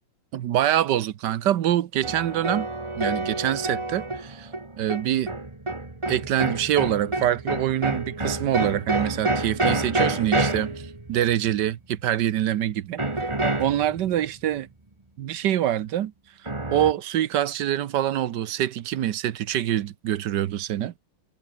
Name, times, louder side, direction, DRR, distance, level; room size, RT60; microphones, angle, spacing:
voice 1, 0.3-2.7 3.0-4.5 4.8-5.3 6.1-10.7 11.1-13.0 13.6-14.7 15.2-16.1 16.7-21.0, right 11 dB, 65° right, 1.4 m, -25 dB
sound 1, 2.0-11.6 13.0-14.2 16.5-16.9, right 2 dB, 15° right, 1.9 m, -28 dB
omnidirectional pair, 2.3 m